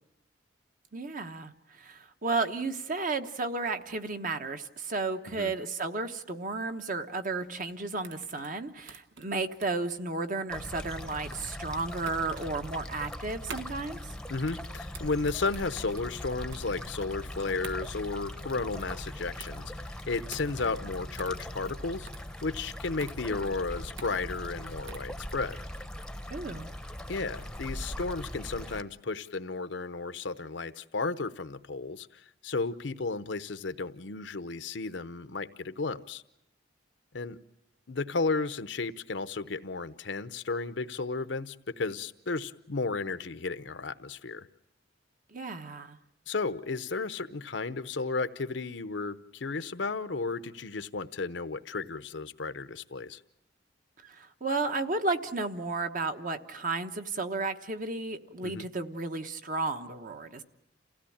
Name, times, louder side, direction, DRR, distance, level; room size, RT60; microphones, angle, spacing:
voice 1, 0.9-14.0 26.3-26.7 45.3-46.0 54.0-60.4, right 3 dB, 45° right, 7 dB, 1.1 m, -33 dB
sound 1, 7.4-25.2, right 5 dB, 90° right, 1.3 m, -49 dB
sound 2, 10.5-28.8, equal, 5° left, 0.9 m, -41 dB
voice 2, 14.3-22.1 22.4-25.6 27.1-36.2 37.1-37.4 37.9-44.5 46.3-53.2 58.4-58.6, left 3 dB, 70° left, 12 dB, 0.8 m, -33 dB
28.5 x 16.5 x 8.6 m, 0.85 s
head